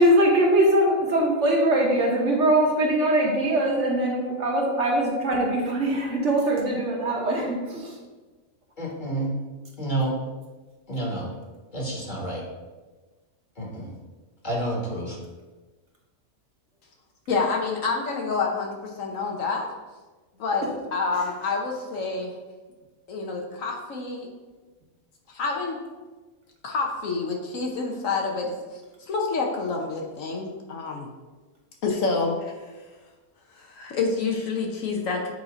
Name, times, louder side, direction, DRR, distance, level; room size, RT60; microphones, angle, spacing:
voice 1, 0.0-7.9, right 1 dB, 55° right, -1 dB, 1.3 m, -22 dB
voice 2, 8.8-9.4 9.8-10.1 10.9-11.3 11.7-12.4 13.6-13.9 14.4-15.2, right 1 dB, 35° left, -3 dB, 1.4 m, -29 dB
voice 3, 17.3-19.7 20.4-22.3 23.1-24.3 25.3-25.8 26.6-31.1 31.8-32.7 33.5-35.3, left 4 dB, 65° left, 1 dB, 1.1 m, -28 dB
8.0 x 2.7 x 4.9 m, 1.3 s
omnidirectional pair, 1.5 m